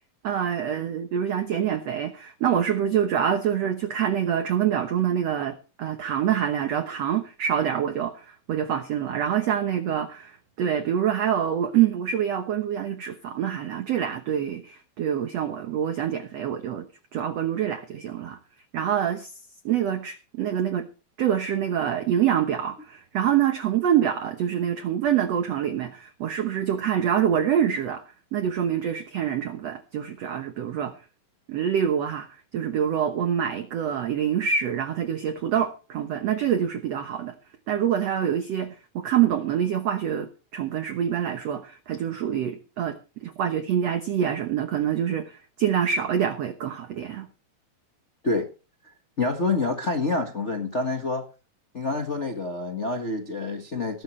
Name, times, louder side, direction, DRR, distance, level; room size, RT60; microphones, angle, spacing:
voice 1, 0.2-16.9 17.1-18.4 18.7-19.3 19.7-20.9 21.2-28.0 28.3-30.9 31.5-37.3 37.7-47.3, right 9 dB, 65° right, 1.8 m, -26 dB
voice 2, 49.2-51.2 51.7-54.0, left 3 dB, 85° left, 0.6 m, -27 dB
17.5 x 14.0 x 3.2 m
omnidirectional pair, 4.3 m